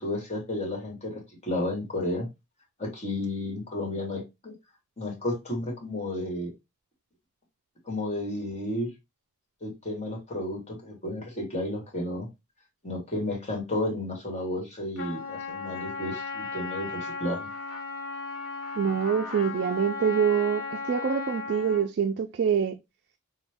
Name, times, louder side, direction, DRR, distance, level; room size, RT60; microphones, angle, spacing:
voice 1, 0.0-2.3 2.8-4.5 5.0-6.5 7.8-8.9 9.6-12.3 12.8-17.5, left 1 dB, 30° left, 1.4 m, -32 dB
Trumpet, 15.0-21.9, left 4 dB, 70° left, 1.1 m, -36 dB
voice 2, 18.8-22.8, right 7 dB, 50° right, 0.3 m, -25 dB
4.0 x 2.2 x 3.4 m
head